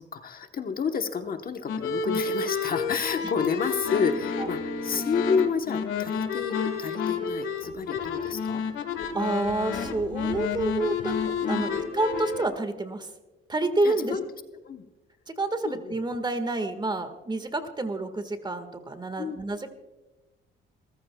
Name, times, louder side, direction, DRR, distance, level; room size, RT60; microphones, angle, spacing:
voice 1, 0.0-8.6 11.4-11.7 13.8-14.2 14.6-14.8 15.6-16.0 19.2-19.4, left 6 dB, 45° left, 6 dB, 1.1 m, -30 dB
sound 1, 1.7-12.4, left 5 dB, 85° left, 1.6 m, -30 dB
voice 2, 9.1-11.2 11.5-13.1 13.5-14.2 15.3-19.7, right 2 dB, 20° right, 9 dB, 1.7 m, -28 dB
28.0 x 14.5 x 2.3 m, 1.1 s
cardioid pair, 90°, 20 cm